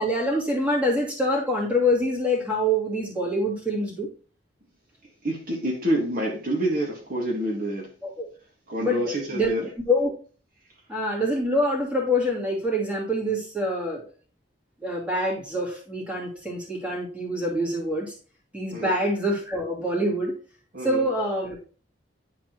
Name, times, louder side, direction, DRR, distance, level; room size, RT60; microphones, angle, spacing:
voice 1, 0.0-4.1 8.0-8.3 8.8-9.5 9.9-10.1 10.9-14.0 14.8-18.1 18.5-20.4 20.8-21.6, equal, 5° right, 2.5 m, -25 dB
voice 2, 5.2-7.9 8.7-9.7 18.7-18.9 20.7-21.0, equal, 50° right, 1.8 m, -27 dB
10.5 x 4.1 x 3.0 m
head